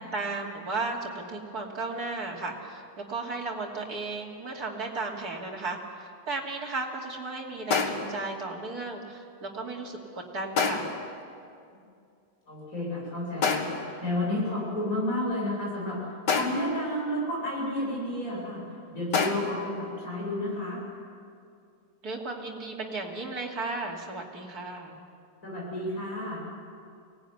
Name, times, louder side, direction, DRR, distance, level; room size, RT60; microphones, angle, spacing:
voice 1, 0.1-5.8 6.3-10.9 22.0-25.0, right 3 dB, 60° right, -1 dB, 3.3 m, -35 dB
sound 1, 7.7-8.2 10.6-11.1 13.4-14.0 16.3-16.8 19.1-19.6, left 4 dB, 70° left, 2.3 m, -27 dB
voice 2, 12.5-18.6 18.9-20.8 25.4-26.4, left 1 dB, 50° left, -4 dB, 8.6 m, -31 dB
24.0 x 19.0 x 9.7 m, 2.4 s
omnidirectional pair, 1.9 m